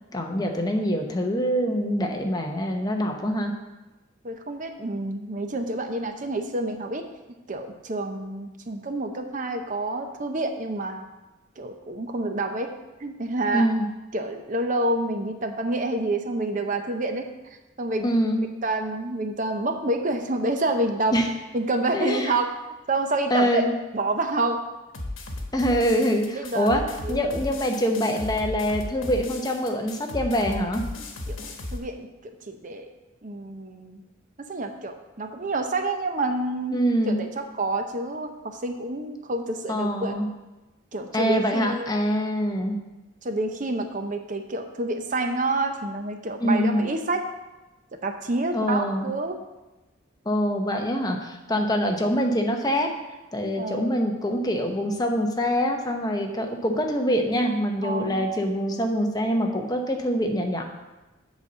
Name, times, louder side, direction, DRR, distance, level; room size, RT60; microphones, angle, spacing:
voice 1, 0.1-3.5 13.5-13.9 18.0-18.5 21.1-21.3 21.9-22.3 23.3-23.7 25.5-26.8 27.1-30.9 36.7-37.3 39.7-40.3 41.1-42.8 46.4-46.9 48.5-49.1 50.2-52.9 53.3-60.6, equal, 20° left, 3 dB, 0.8 m, -24 dB
voice 2, 4.2-7.1 7.5-11.1 11.6-12.7 13.0-13.7 14.1-17.3 17.8-18.1 18.6-21.1 21.5-22.5 22.9-23.6 23.9-24.6 26.3-26.7 27.0-27.4 31.3-31.4 31.7-32.1 32.5-32.9 33.2-34.0 34.5-36.8 37.1-40.2 40.9-41.9 43.2-47.2 48.0-49.4 51.5-51.7 53.6-54.1 57.8-58.3, right 2 dB, 40° right, 6 dB, 0.7 m, -28 dB
sound 1, 24.9-31.8, left 2 dB, 85° left, 1.2 m, -35 dB
8.1 x 4.1 x 6.7 m, 1.1 s
head